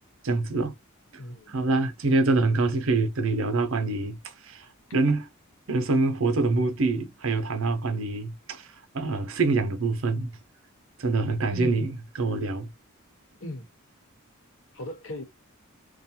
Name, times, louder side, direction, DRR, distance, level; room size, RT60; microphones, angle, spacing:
voice 1, 0.2-0.7 1.5-4.2 4.5-4.6 4.9-5.3 5.7-8.7 8.9-10.3 11.0-11.9 12.2-12.7, right 3 dB, 60° right, 0.6 m, -25 dB
voice 2, 1.2-1.6 11.5-11.9 13.4-13.7 14.7-15.2, left 1 dB, 60° left, 1.1 m, -37 dB
2.4 x 2.2 x 2.7 m
head